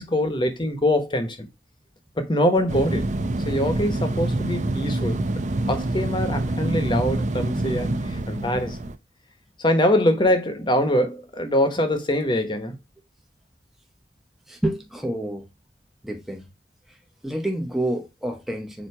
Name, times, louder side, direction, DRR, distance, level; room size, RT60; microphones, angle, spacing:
voice 1, 0.1-1.5 2.2-5.2 5.7-8.8 9.6-12.8, left 1 dB, 25° left, 1.1 m, -23 dB
Air Conditioner, 2.7-9.0, right 2 dB, 40° right, 0.6 m, -26 dB
voice 2, 14.5-15.5 16.0-16.5 16.9-17.0 17.2-18.9, right 1 dB, ahead, 0.9 m, -28 dB
7.1 x 2.9 x 4.7 m
head